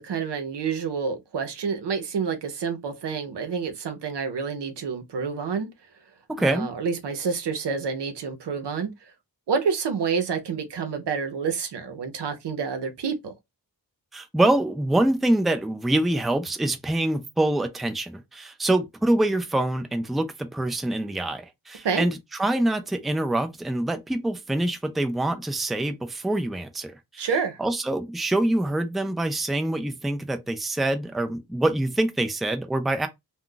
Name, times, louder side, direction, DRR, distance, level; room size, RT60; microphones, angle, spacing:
voice 1, 0.0-5.7 6.4-8.9 9.5-13.3 21.8-22.0 27.2-27.6, right 5 dB, 85° right, 0.8 m, -28 dB
voice 2, 6.3-6.7 14.1-27.3 27.6-33.1, right 1 dB, ahead, 0.4 m, -25 dB
2.3 x 2.3 x 3.8 m
wide cardioid pair, 95°, 40 cm